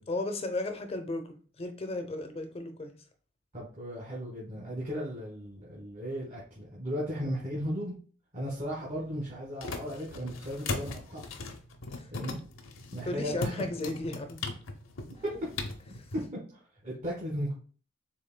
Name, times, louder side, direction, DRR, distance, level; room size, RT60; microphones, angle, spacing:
voice 1, 0.1-3.0 11.9-12.1 13.0-14.4 15.9-16.0, left 2 dB, 30° left, 0.7 m, -35 dB
voice 2, 3.5-7.9 8.3-11.2 12.1-12.4 12.9-13.5 15.1-15.3 16.3-17.5, equal, 40° right, 1.4 m, -36 dB
sound 1, 8.4-16.3, left 3 dB, 80° left, 0.7 m, -40 dB
6.7 x 3.6 x 2.2 m
head